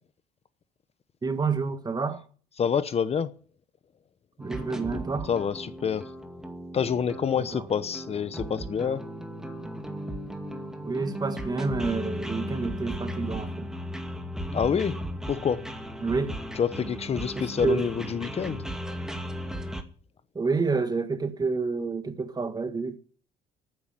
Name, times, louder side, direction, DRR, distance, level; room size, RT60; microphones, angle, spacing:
voice 1, 1.2-2.2 4.4-5.3 7.4-7.7 10.8-13.7 16.0-16.4 17.4-17.9 20.4-23.0, right 4 dB, 25° right, 1.8 m, -29 dB
voice 2, 2.6-3.3 5.3-6.1 6.7-9.0 14.5-15.0 15.3-15.6 16.5-18.6, left 7 dB, 35° left, 0.9 m, -27 dB
sound 1, 4.4-19.8, equal, 5° right, 2.2 m, -36 dB
12.0 x 9.6 x 8.9 m
cardioid pair, 110°, 17 cm